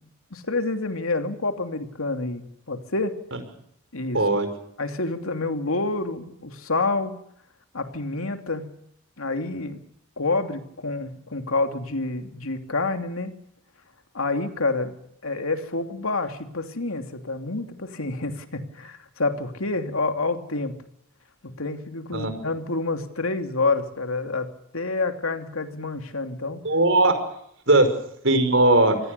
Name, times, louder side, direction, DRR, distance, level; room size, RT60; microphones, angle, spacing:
voice 1, 0.3-3.1 3.9-4.2 4.8-7.2 7.7-8.6 9.2-9.8 10.2-13.3 14.1-14.9 15.2-20.8 21.4-24.5 24.7-26.6 27.7-27.8, left 3 dB, 80° left, 6 dB, 2.9 m, -28 dB
voice 2, 4.1-4.5 22.1-22.3 26.6-27.2 27.7-27.9 28.2-29.0, right 2 dB, 65° right, 9 dB, 5.4 m, -18 dB
26.5 x 19.0 x 6.9 m, 0.73 s
head